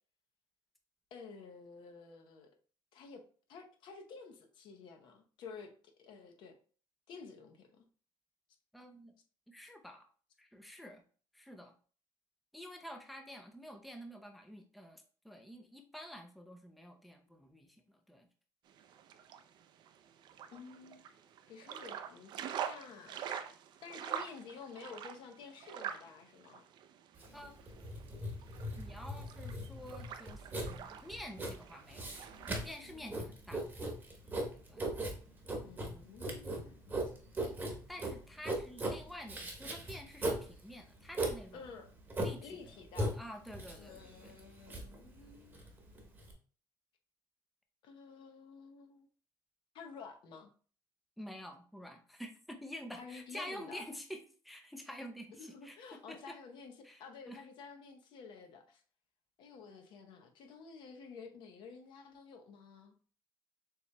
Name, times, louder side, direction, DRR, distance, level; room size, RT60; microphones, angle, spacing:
voice 1, 1.1-2.5 2.9-3.2 3.5-5.7 6.0-6.6 7.1-7.9 20.5-21.0 21.5-22.3 22.7-23.2 23.8-26.6 35.6-37.0 41.5-41.9 42.4-43.2 43.8-45.7 47.8-49.1 49.7-50.5 53.0-53.9 55.4-58.8 59.4-62.9, left 5 dB, 60° left, 0.8 m, -51 dB
voice 2, 8.7-9.1 9.5-10.1 10.4-11.0 11.3-11.7 12.5-18.3 27.3-27.5 28.8-32.1 32.5-33.6 34.7-34.9 37.9-41.6 42.2-42.5 43.1-44.1 51.2-55.8 56.1-56.4 56.8-57.4, equal, ahead, 0.5 m, -49 dB
sound 1, 18.7-32.7, right 8 dB, 55° right, 0.4 m, -46 dB
Writing, 27.2-46.3, right 1 dB, 20° right, 1.0 m, -39 dB
6.8 x 3.0 x 2.2 m
cardioid pair, 135°, 9 cm